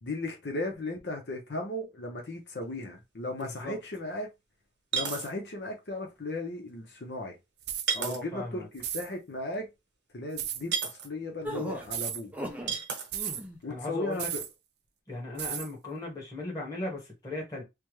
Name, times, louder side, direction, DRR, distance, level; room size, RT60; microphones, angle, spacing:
voice 1, 0.0-4.3 4.9-7.3 7.9-9.7 10.1-12.3 13.6-14.4, left 2 dB, 75° left, 0.8 m, -36 dB
sound 1, 2.8-2.9 3.4-3.5 4.9-5.3 7.9-8.2 10.7-11.1 12.7-13.1, right 7 dB, 80° right, 0.9 m, -31 dB
voice 2, 3.3-3.7 7.9-8.7 13.6-14.3 15.1-17.6, left 2 dB, 20° left, 1.3 m, -37 dB
sound 2, 7.6-7.9 8.8-9.1 10.4-10.6 11.8-12.2 13.1-13.4 14.2-14.5 15.4-15.7, right 10 dB, 65° right, 0.5 m, -34 dB
sound 3, 11.4-12.8 13.1-13.6, equal, 10° right, 0.5 m, -37 dB
3.4 x 2.2 x 3.1 m
head